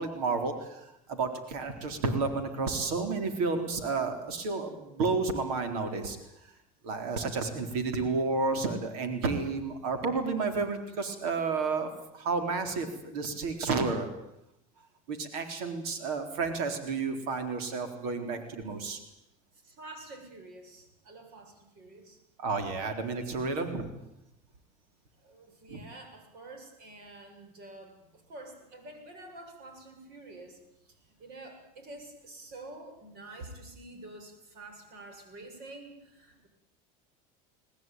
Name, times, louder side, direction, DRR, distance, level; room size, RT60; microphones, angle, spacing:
voice 1, 0.0-6.2 6.8-14.1 15.1-19.0 22.4-23.9 25.7-25.8, right 4 dB, 75° right, 7 dB, 4.0 m, -31 dB
voice 2, 19.6-22.2 25.2-30.9 31.2-36.5, right 2 dB, 55° right, 6 dB, 7.7 m, -48 dB
21.0 x 20.0 x 9.3 m, 0.85 s
supercardioid pair, 105°, 19 cm